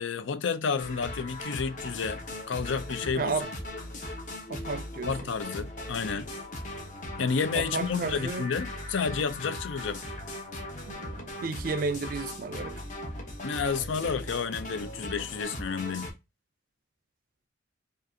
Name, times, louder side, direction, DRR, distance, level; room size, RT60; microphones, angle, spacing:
voice 1, 0.0-3.4 5.1-6.3 7.2-10.0 13.4-16.1, left 5 dB, 80° left, 0.5 m, -31 dB
sound 1, 0.8-16.1, left 1 dB, 40° left, 1.0 m, -39 dB
voice 2, 3.2-3.5 4.5-5.1 7.5-8.5 10.9-12.8, right 4 dB, 45° right, 0.4 m, -32 dB
5.0 x 2.5 x 2.7 m
head